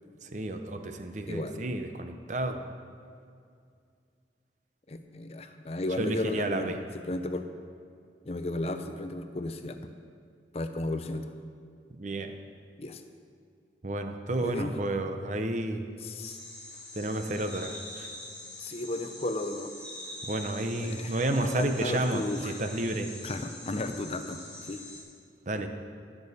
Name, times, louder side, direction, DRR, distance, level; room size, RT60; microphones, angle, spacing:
voice 1, 0.2-2.7 6.0-6.8 11.9-12.3 13.8-15.9 17.0-18.1 20.2-23.1 25.5-25.7, right 1 dB, 45° right, 7 dB, 0.7 m, -31 dB
voice 2, 1.3-1.6 4.9-6.7 7.1-7.4 8.2-9.9 10.5-11.3 12.8-13.0 14.4-14.7 16.0-16.4 18.6-19.7 20.8-22.6 23.2-24.8, left 2 dB, 35° left, 8 dB, 0.6 m, -34 dB
sound 1, 16.2-25.0, left 1 dB, 5° left, 2.4 m, -44 dB
17.5 x 6.9 x 4.2 m, 2.3 s
head